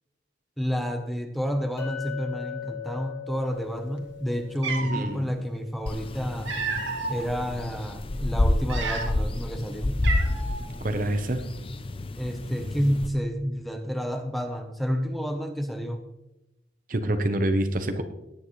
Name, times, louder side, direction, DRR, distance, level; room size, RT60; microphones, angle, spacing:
voice 1, 0.6-6.5 7.1-10.0 12.2-16.0, equal, ahead, 5 dB, 0.9 m, -30 dB
Chink clink, 1.8-6.0, left 9 dB, 75° left, 2.7 m, -40 dB
Cat, 4.1-4.2 4.6-5.1 6.1-7.2 7.8-8.0 8.6-9.4 9.6-9.7 10.0-10.7, right 4 dB, 80° right, 2.1 m, -31 dB
voice 2, 4.8-5.3 10.8-11.4 16.9-18.0, right 1 dB, 45° right, 8 dB, 0.9 m, -26 dB
sound 1, 5.9-13.1, left 1 dB, 30° left, 0.6 m, -29 dB
18.5 x 9.3 x 3.2 m, 0.93 s
head